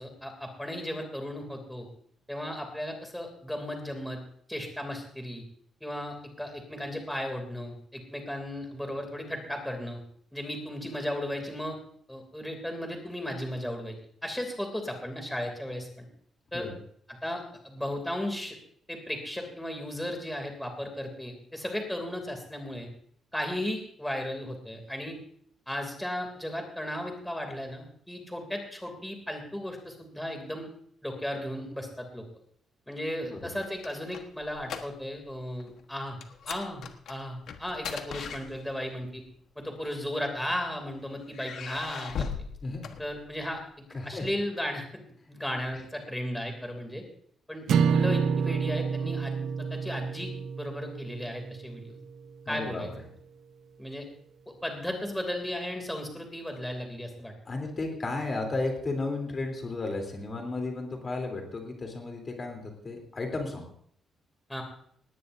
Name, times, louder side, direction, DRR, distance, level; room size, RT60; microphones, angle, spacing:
voice 1, 0.0-1.9 2.3-4.2 4.5-5.4 5.8-10.0 10.3-11.8 12.1-14.0 14.2-16.1 16.5-16.7 17.1-18.6 18.9-22.9 23.3-25.2 25.7-30.7 31.0-32.3 32.9-36.2 36.5-39.2 39.6-42.3 43.0-43.6 44.0-45.0 45.3-47.0 47.5-50.3 50.6-52.0 52.5-52.9 53.8-54.1 54.5-57.3 64.5-64.6, left 1 dB, 5° left, 3 dB, 2.7 m, -35 dB
sound 1, 33.4-35.3 35.6-35.8 36.2-39.0 39.9-40.7 41.3-43.6, left 6 dB, 60° left, 1.2 m, -39 dB
voice 2, 43.9-44.3 52.5-52.9 57.5-63.6, left 3 dB, 25° left, 3 dB, 3.3 m, -33 dB
sound 2, 47.7-52.0, right 6 dB, 65° right, 0.8 m, -28 dB
19.0 x 17.5 x 2.7 m, 0.64 s
cardioid pair, 175°, 0 cm